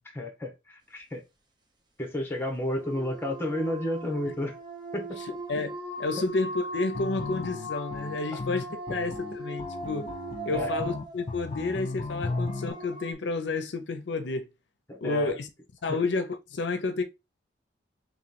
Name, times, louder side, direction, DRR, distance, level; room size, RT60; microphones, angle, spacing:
voice 1, 0.1-1.2 2.0-4.6 4.9-5.2 10.5-10.7 14.9-15.4 15.9-16.0, left 1 dB, 10° left, 1.0 m, -31 dB
sound 1, 2.6-13.1, right 1 dB, 25° right, 0.9 m, -39 dB
voice 2, 5.2-10.1 10.5-14.5 15.0-15.5 15.8-17.0, left 3 dB, 75° left, 0.6 m, -31 dB
sound 2, 6.9-12.7, left 3 dB, 35° left, 0.4 m, -35 dB
3.1 x 3.0 x 4.0 m
head